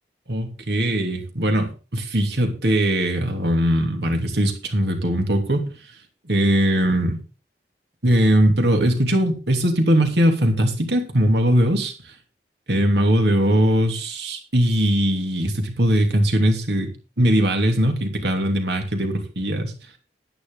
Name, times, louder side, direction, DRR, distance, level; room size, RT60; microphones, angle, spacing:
voice 1, 0.3-5.7 6.2-7.2 8.0-11.9 12.7-19.7, equal, 75° right, 4 dB, 2.9 m, -20 dB
11.0 x 9.7 x 3.9 m, 0.33 s
head